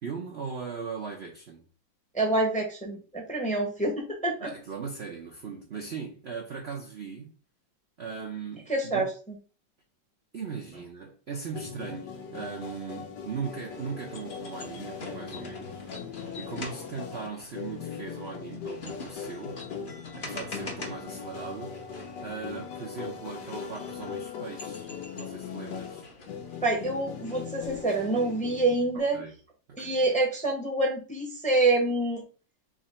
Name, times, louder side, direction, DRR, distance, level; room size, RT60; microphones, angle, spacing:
voice 1, 0.0-1.7 4.4-7.3 8.0-9.1 10.3-15.8 16.4-19.6 20.1-21.7 22.2-24.9 25.1-26.1 28.9-29.3 29.8-30.0, right 5 dB, 55° right, 0.7 m, -39 dB
voice 2, 2.1-4.5 8.7-9.4 26.6-29.2 29.8-32.2, right 2 dB, 5° left, 0.7 m, -27 dB
sound 1, 11.5-29.0, left 7 dB, 70° left, 1.4 m, -40 dB
sound 2, 13.5-28.8, left 2 dB, 40° left, 0.8 m, -45 dB
3.9 x 3.0 x 4.2 m
omnidirectional pair, 2.0 m